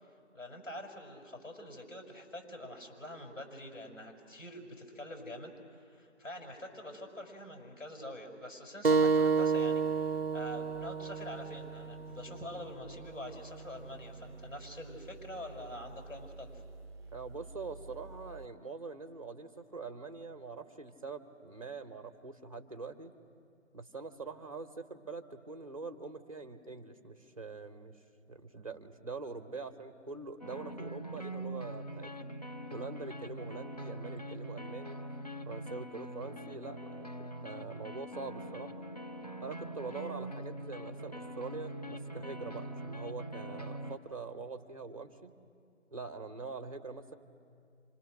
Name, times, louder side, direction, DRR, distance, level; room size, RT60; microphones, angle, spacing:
voice 1, 0.3-16.6, left 1 dB, 80° left, 3 dB, 6.3 m, -46 dB
sound 1, 8.8-14.0, right 4 dB, 50° right, 0.7 m, -31 dB
voice 2, 17.1-23.1 23.7-28.0 28.3-32.3 32.7-35.0 35.5-38.9 39.4-45.4 45.9-47.2, right 4 dB, 25° right, 9 dB, 1.2 m, -44 dB
sound 2, 30.4-44.0, right 1 dB, 30° left, 0.8 m, -43 dB
29.5 x 26.0 x 6.6 m, 2.3 s
figure-of-eight pair, 170°, 38 cm